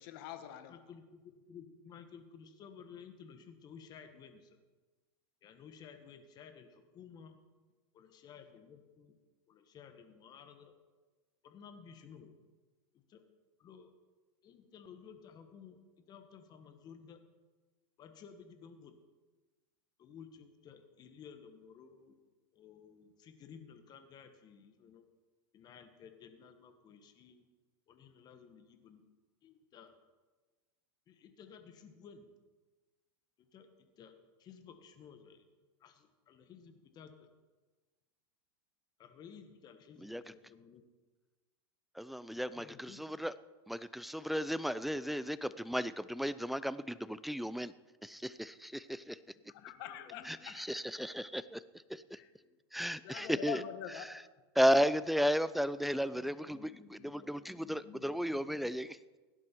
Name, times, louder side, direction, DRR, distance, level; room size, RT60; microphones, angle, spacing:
voice 1, 0.0-0.7 49.5-50.6 52.2-52.3 53.0-54.1, left 10 dB, 60° left, 9 dB, 1.3 m, -44 dB
voice 2, 0.7-4.6 5.4-7.4 7.9-9.2 9.5-10.7 11.4-12.4 12.9-13.2 13.6-13.9 14.4-15.8 16.1-17.2 18.0-18.9 20.0-22.1 22.5-25.0 25.5-27.4 27.9-29.0 29.4-29.9 31.1-32.3 33.4-34.1 34.4-35.4 35.8-37.3 39.0-40.8 42.5-43.0 49.3-50.5 52.3-52.6 56.0-58.7, left 7 dB, 30° left, 7 dB, 1.5 m, -55 dB
voice 3, 42.0-43.3 43.7-47.7 48.0-49.2 50.2-51.6 51.9-52.2 52.7-53.6 54.6-59.0, equal, ahead, 16 dB, 0.3 m, -34 dB
16.5 x 11.0 x 4.6 m, 1.3 s
supercardioid pair, 135°, 13 cm